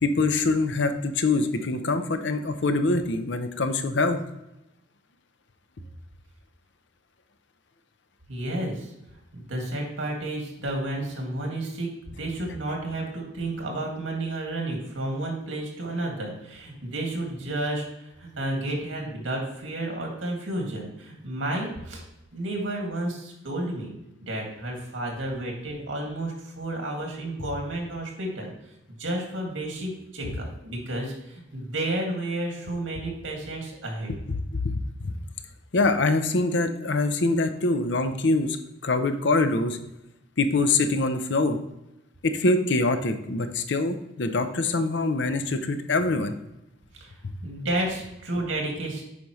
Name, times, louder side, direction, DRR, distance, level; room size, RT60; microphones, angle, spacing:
voice 1, 0.0-4.2 34.6-34.7 35.0-35.1 35.7-38.6 38.8-39.8 40.4-41.6 42.2-46.3, left 3 dB, 65° left, 9 dB, 0.6 m, -24 dB
voice 2, 8.3-8.9 9.3-11.9 12.2-22.0 22.3-23.9 24.2-28.5 29.0-34.1 46.9-47.1 47.4-49.0, right 1 dB, 85° right, 0 dB, 2.0 m, -31 dB
8.3 x 5.5 x 3.1 m, 0.90 s
head